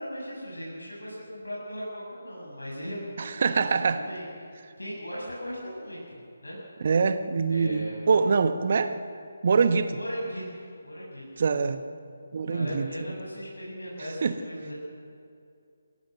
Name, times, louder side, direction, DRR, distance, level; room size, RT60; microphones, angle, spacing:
voice 1, 0.0-3.2 3.6-4.5 4.8-6.6 7.5-8.5 9.6-11.2 12.4-14.7, equal, 80° left, -5 dB, 7.8 m, -38 dB
voice 2, 3.2-4.0 6.8-8.9 9.4-10.0 11.4-11.8 12.3-12.9 14.2-14.3, right 5 dB, 45° right, 9 dB, 1.4 m, -24 dB
27.5 x 17.0 x 6.6 m, 2.4 s
figure-of-eight pair, 150°, 0 cm